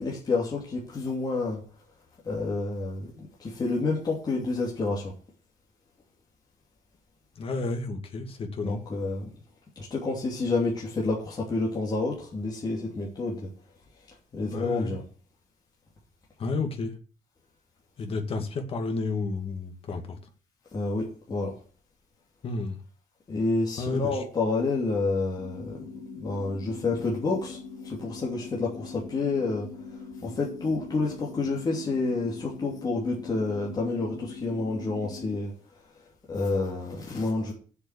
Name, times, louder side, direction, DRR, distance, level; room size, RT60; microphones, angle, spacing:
voice 1, 0.0-1.6 2.2-5.1 8.6-9.3 9.8-13.5 14.3-15.0 20.7-21.5 23.3-25.8 26.1-29.7 30.2-35.5 36.3-37.5, left 3 dB, 30° left, 2.9 m, -29 dB
voice 2, 7.4-8.8 14.5-14.9 16.4-16.9 18.0-20.2 22.4-22.8 23.8-24.2, left 3 dB, 45° left, 2.2 m, -31 dB
sound 1, 25.4-35.4, left 4 dB, 60° left, 2.9 m, -42 dB
8.1 x 7.7 x 8.5 m
cardioid pair, 175°, 13 cm